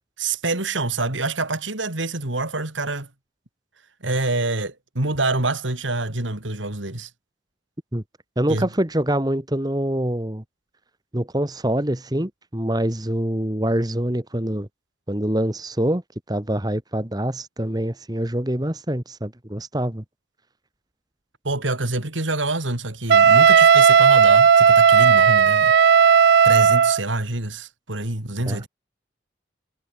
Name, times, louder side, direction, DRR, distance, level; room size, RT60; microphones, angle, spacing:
voice 1, 0.2-3.1 4.0-7.1 8.5-8.7 21.4-25.7 26.4-28.7, right 2 dB, 80° right, 3.4 m, -26 dB
voice 2, 8.4-10.4 11.1-14.7 15.1-16.0 16.3-20.0 28.4-28.6, right 1 dB, 20° right, 1.5 m, -25 dB
Wind instrument woodwind instrument, 23.1-27.0, right 7 dB, 55° right, 0.3 m, -14 dB
head